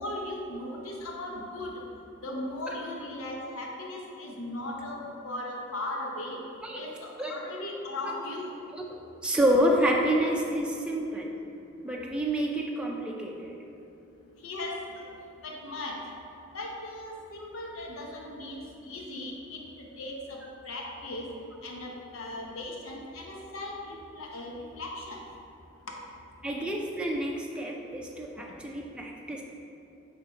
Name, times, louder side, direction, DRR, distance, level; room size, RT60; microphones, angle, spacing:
voice 1, 0.0-1.8 2.2-6.4 6.7-8.5 14.4-15.0 15.4-16.0 16.5-20.4 20.6-21.3 21.6-25.2, left 1 dB, 85° left, -1 dB, 1.1 m, -37 dB
voice 2, 9.2-11.3 11.8-13.6 26.4-29.4, right 1 dB, 5° right, -1 dB, 0.4 m, -28 dB
8.8 x 3.5 x 4.6 m, 2.8 s
head